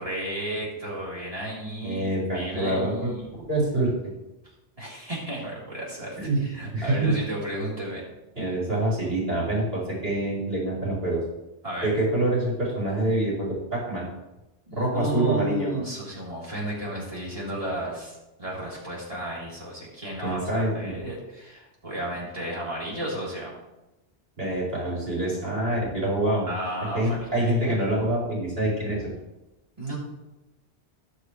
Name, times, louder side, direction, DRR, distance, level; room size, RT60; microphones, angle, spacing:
voice 1, 0.0-2.1 2.3-3.2 4.8-8.0 11.6-11.9 14.7-23.5 26.5-27.8 29.8-30.0, right 1 dB, 30° right, -6 dB, 3.9 m, -33 dB
voice 2, 1.8-3.1 3.4-3.9 6.2-6.4 6.7-7.2 8.3-11.2 11.8-14.1 14.7-15.7 20.2-20.9 24.4-26.5 26.9-29.2, right 1 dB, 60° right, -7 dB, 5.0 m, -26 dB
19.0 x 6.5 x 3.3 m, 1.0 s
omnidirectional pair, 1.1 m